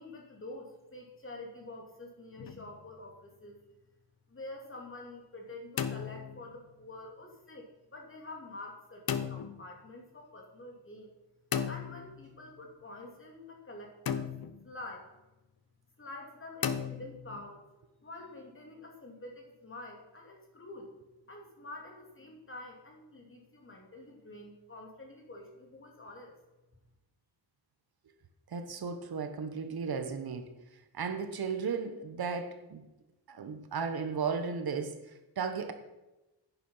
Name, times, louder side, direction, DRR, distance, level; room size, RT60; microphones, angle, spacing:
voice 1, 0.0-3.6 4.3-11.1 11.7-14.3 14.6-15.1 16.0-17.6 18.0-20.9 21.3-26.4, left 2 dB, 30° left, 1 dB, 2.8 m, -47 dB
sound 1, 2.4-2.9 5.5-6.7 9.1-9.7 11.5-12.5 14.1-14.7 16.6-17.5, left 8 dB, 60° left, 0.8 m, -36 dB
voice 2, 28.5-30.5 30.9-32.8 33.3-35.7, right 5 dB, 60° right, 7 dB, 1.3 m, -35 dB
10.5 x 9.8 x 5.6 m, 1.0 s
wide cardioid pair, 145°, 41 cm